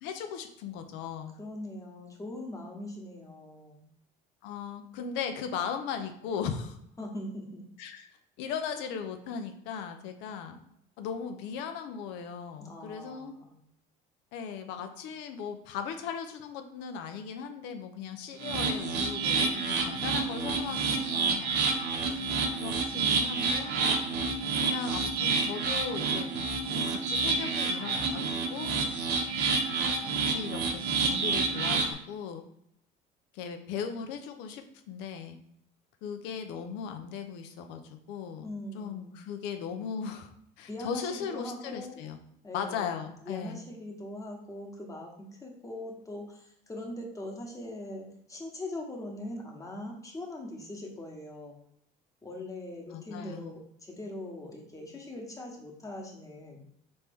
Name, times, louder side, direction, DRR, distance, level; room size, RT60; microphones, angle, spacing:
voice 1, 0.0-1.3 4.4-6.8 7.8-8.1 8.4-10.6 11.0-13.3 14.3-21.6 22.1-22.2 22.6-23.8 24.6-26.3 26.7-28.7 30.1-32.4 33.3-35.4 36.0-38.5 38.7-40.3 40.6-42.2 42.5-43.6 52.9-53.5, left 7 dB, 75° left, 7 dB, 0.7 m, -37 dB
voice 2, 1.4-3.8 7.0-7.6 12.6-13.6 38.4-39.2 40.7-41.9 42.4-51.6 52.2-56.6, left 1 dB, 15° left, 0 dB, 1.2 m, -41 dB
sound 1, 18.4-31.9, right 4 dB, 65° right, 0.9 m, -29 dB
4.3 x 3.2 x 3.5 m, 0.74 s
supercardioid pair, 100°, 19 cm